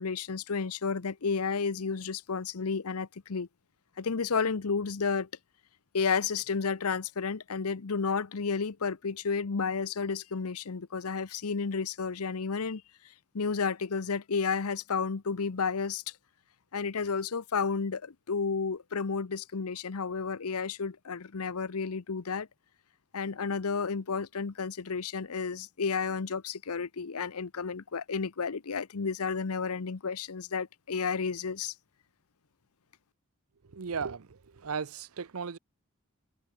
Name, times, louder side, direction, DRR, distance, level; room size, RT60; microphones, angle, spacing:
voice 1, 0.0-3.5 4.0-5.3 5.9-12.8 13.3-16.0 16.7-22.5 23.1-31.7, left 5 dB, 85° left, 0.8 m, -32 dB
voice 2, 33.6-35.6, right 5 dB, 75° right, 0.7 m, -36 dB
head